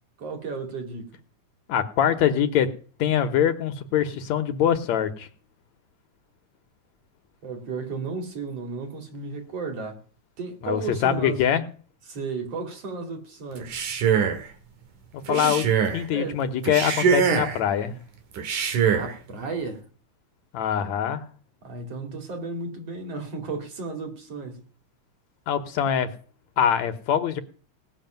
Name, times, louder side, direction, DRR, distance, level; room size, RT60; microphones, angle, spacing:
voice 1, 0.2-1.1 7.4-10.0 10.4-11.4 12.1-13.8 15.3-15.6 16.1-16.4 19.0-19.8 21.6-24.7, right 4 dB, 50° right, 3.5 m, -33 dB
voice 2, 1.7-2.7 3.0-5.3 10.6-11.6 15.1-15.6 15.9-18.0 20.5-21.2 25.5-26.1 26.6-27.4, left 9 dB, 70° left, 2.3 m, -23 dB
Male speech man speaking, 13.6-14.5 15.3-16.0 16.6-17.6 18.4-19.1, right 7 dB, 85° right, 3.5 m, -23 dB
18.0 x 6.6 x 9.2 m
omnidirectional pair, 3.5 m